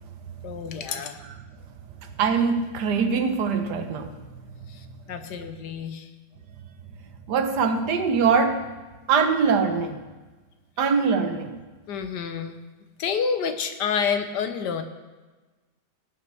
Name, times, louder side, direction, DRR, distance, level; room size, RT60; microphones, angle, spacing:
voice 1, 0.4-1.2 5.1-6.1 11.9-12.6 13.0-14.8, left 6 dB, 85° left, 1.5 m, -28 dB
voice 2, 2.0-4.3 4.6-4.7 7.3-8.7 9.1-10.0 10.8-11.6, right 5 dB, 80° right, 1.5 m, -23 dB
18.0 x 9.1 x 3.4 m
omnidirectional pair, 1.8 m